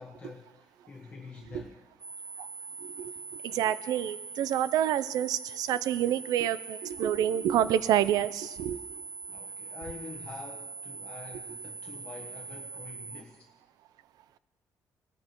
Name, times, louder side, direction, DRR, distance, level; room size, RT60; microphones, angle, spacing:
voice 1, 0.0-1.8 9.3-13.5, left 4 dB, 20° left, -1 dB, 1.1 m, -46 dB
sound 1, 2.0-13.2, right 4 dB, 10° right, 1.3 m, -42 dB
voice 2, 3.4-8.8, right 11 dB, 90° right, 16 dB, 0.5 m, -28 dB
20.0 x 14.0 x 3.0 m, 1.2 s
cardioid pair, 155°, 6 cm